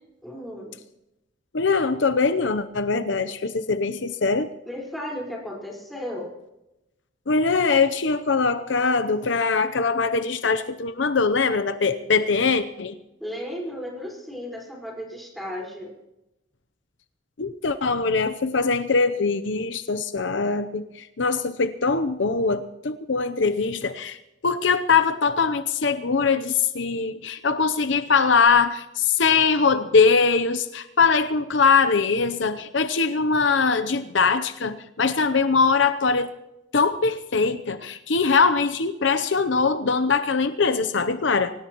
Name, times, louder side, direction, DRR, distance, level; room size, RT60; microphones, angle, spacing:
voice 1, 0.2-0.8 4.6-6.3 13.2-15.9, equal, ahead, -3 dB, 4.7 m, -34 dB
voice 2, 1.5-4.5 7.3-12.9 17.4-20.8 21.2-24.2 24.4-36.3 36.7-41.5, left 4 dB, 70° left, 12 dB, 0.7 m, -22 dB
24.0 x 18.0 x 3.0 m, 0.92 s
head